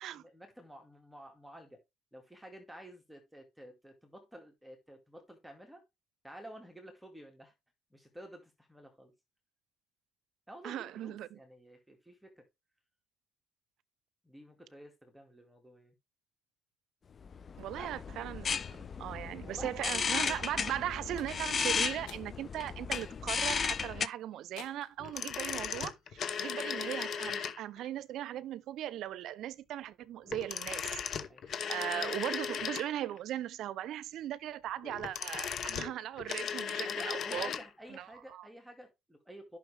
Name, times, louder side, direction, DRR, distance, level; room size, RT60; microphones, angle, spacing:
voice 1, 0.0-1.8 2.1-5.8 6.2-7.5 7.9-9.1 10.5-12.4 14.2-16.0 17.8-17.9 19.4-20.4 26.3-26.5 31.3-31.6 36.7-39.6, equal, 5° right, 2.3 m, -51 dB
voice 2, 10.6-11.3 17.6-30.9 31.7-37.5 37.9-38.5, right 12 dB, 65° right, 0.6 m, -38 dB
sound 1, 17.2-24.1, left 6 dB, 35° left, 0.5 m, -34 dB
sound 2, 20.3-20.5 21.2-21.6 22.1-22.3 22.9-23.2 23.7-23.8 24.6-24.9, left 9 dB, 80° left, 1.5 m, -51 dB
sound 3, 25.0-27.9 30.3-33.2 34.8-37.7 37.9-38.0, left 7 dB, 50° left, 0.9 m, -37 dB
10.5 x 6.2 x 3.4 m
cardioid pair, 105°, 0 cm